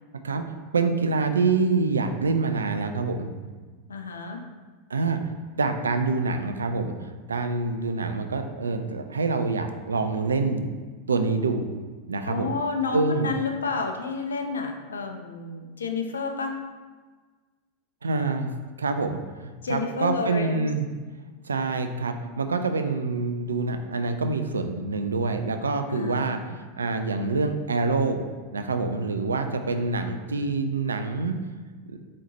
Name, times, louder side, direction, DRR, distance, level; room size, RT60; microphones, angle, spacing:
voice 1, 0.7-3.3 4.9-5.3 5.6-10.7 11.1-11.7 12.1-12.5 12.9-13.3 18.0-18.5 18.8-20.9 21.4-28.2 28.5-31.4 31.9-32.0, right 4 dB, 75° right, 7 dB, 0.3 m, -26 dB
voice 2, 3.9-4.4 12.2-16.6 19.6-20.7 25.9-26.5, left 4 dB, 75° left, 4 dB, 0.4 m, -30 dB
4.2 x 4.0 x 2.9 m, 1.4 s
figure-of-eight pair, 85°, 0 cm